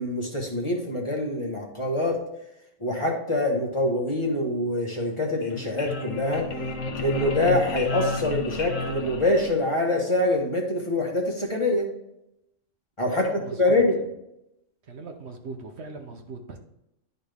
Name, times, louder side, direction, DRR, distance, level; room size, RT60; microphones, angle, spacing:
voice 1, 0.0-2.2 2.8-6.5 7.0-11.9 13.0-13.3 13.6-14.0, left 2 dB, 25° left, -1 dB, 1.3 m, -25 dB
sound 1, 5.2-9.9, left 3 dB, 75° left, 1.4 m, -32 dB
voice 2, 13.1-13.8 14.9-16.6, right 4 dB, 60° right, 4 dB, 1.0 m, -39 dB
11.0 x 4.1 x 3.4 m, 0.85 s
omnidirectional pair, 1.3 m